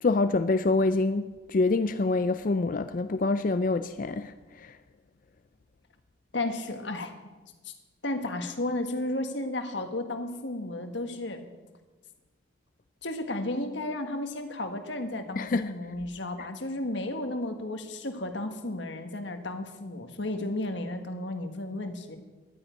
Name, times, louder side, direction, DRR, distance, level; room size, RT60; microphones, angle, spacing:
voice 1, 0.0-4.8 15.4-15.7, left 3 dB, 40° left, 0.4 m, -26 dB
voice 2, 6.3-7.1 7.6-7.7 8.0-11.5 13.0-22.2, left 1 dB, 60° left, 1.6 m, -33 dB
12.0 x 9.6 x 9.2 m
head